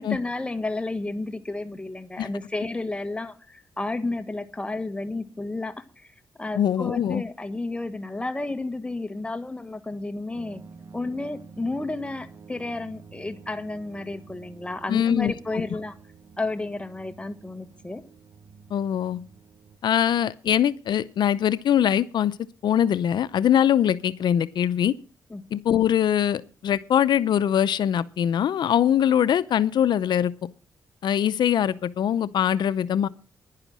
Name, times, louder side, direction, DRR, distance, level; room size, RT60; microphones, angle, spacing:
voice 1, 0.0-5.7 6.4-10.6 10.9-15.9 16.4-18.0 25.3-25.4, left 2 dB, 15° left, 9 dB, 1.5 m, -31 dB
voice 2, 6.5-7.2 14.9-15.7 18.7-19.2 19.8-22.4 22.6-24.9 25.5-30.3 31.0-33.1, left 9 dB, 75° left, 16 dB, 0.6 m, -22 dB
sound 1, 10.3-19.8, right 5 dB, 40° right, 1.1 m, -48 dB
11.0 x 10.5 x 6.1 m, 0.39 s
cardioid pair, 80°, 8 cm